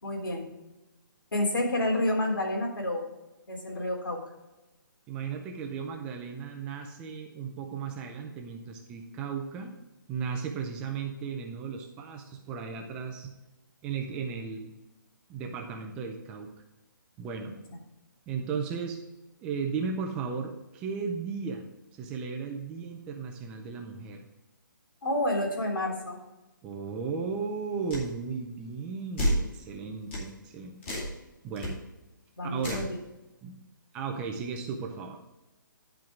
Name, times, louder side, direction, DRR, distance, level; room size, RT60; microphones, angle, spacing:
voice 1, 0.0-0.4 1.3-3.0 3.5-4.2 25.0-26.2 32.4-33.0, left 1 dB, 80° left, 0 dB, 3.3 m, -29 dB
voice 2, 5.1-9.7 10.1-13.3 13.8-14.7 15.3-16.5 17.2-17.6 18.3-19.0 19.4-24.3 26.6-30.8 31.4-31.8 32.4-32.9 33.4-33.6 33.9-35.2, right 5 dB, 10° right, 3 dB, 0.3 m, -35 dB
sound 1, 27.9-28.1 29.2-29.5 30.1-30.3 30.8-31.1 31.6-31.7 32.6-32.9, equal, 35° left, 2.5 m, -29 dB
10.5 x 4.5 x 5.0 m, 1.0 s
hypercardioid pair, 170°, 11 cm